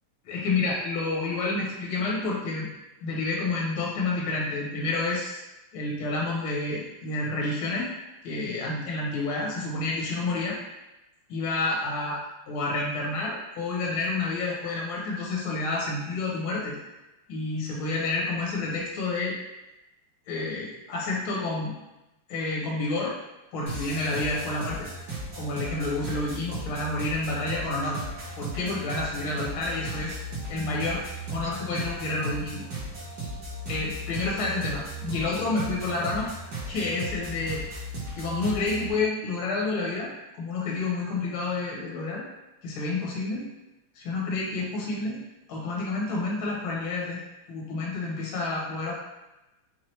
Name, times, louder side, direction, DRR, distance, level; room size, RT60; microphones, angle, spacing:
voice 1, 0.3-2.7 3.0-5.4 5.7-7.9 8.2-10.6 11.3-12.2 12.5-16.8 17.3-19.3 20.3-21.7 22.3-23.2 23.5-24.9 25.4-28.0 28.4-30.2 30.5-31.0 31.3-32.7 33.1-33.3 33.7-36.3 36.7-37.6 38.2-42.2 42.6-43.5 44.0-45.2 45.5-47.2 47.5-48.9, left 3 dB, 75° left, -4 dB, 1.8 m, -29 dB
sound 1, 23.7-38.9, right 2 dB, 50° right, 1.7 m, -36 dB
4.7 x 2.9 x 3.2 m, 0.98 s
omnidirectional pair, 2.4 m